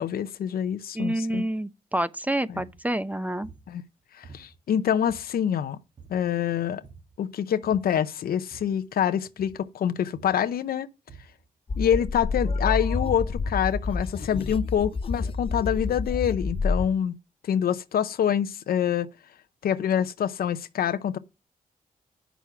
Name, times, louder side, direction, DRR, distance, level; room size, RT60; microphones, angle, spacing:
voice 1, 0.0-1.4 2.5-2.6 3.7-3.8 4.2-5.8 6.1-6.8 7.2-10.9 11.8-17.2 17.4-19.1 19.6-21.2, left 9 dB, 90° left, 0.6 m, -26 dB
voice 2, 0.9-3.5, right 1 dB, 10° right, 0.7 m, -28 dB
sound 1, 2.5-2.8 3.4-3.7 4.2-4.7 5.1-5.6 6.0-6.3 6.7-7.2 7.6-8.0 8.3-8.8 9.3-9.7 10.1-10.4 11.1-11.4 11.9-12.3 12.5-14.6, right 5 dB, 60° right, 2.6 m, -50 dB
sound 2, 11.7-16.9, left 3 dB, 40° left, 0.7 m, -29 dB
9.1 x 6.1 x 5.7 m
cardioid pair, 70°, 15 cm